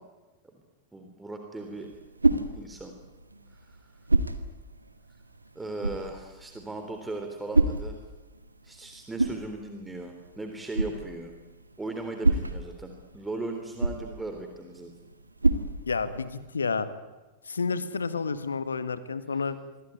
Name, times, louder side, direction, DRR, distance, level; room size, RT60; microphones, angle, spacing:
voice 1, 0.9-1.9 2.5-2.9 5.6-8.0 8.6-11.3 11.8-14.9, right 2 dB, 10° right, 4 dB, 3.5 m, -37 dB
sound 1, 1.6-16.5, right 2 dB, 80° right, 1.9 m, -31 dB
voice 2, 15.9-16.9 17.5-19.6, left 5 dB, 75° left, 13 dB, 1.8 m, -30 dB
26.5 x 23.0 x 9.5 m, 1.2 s
figure-of-eight pair, 90°, 0 cm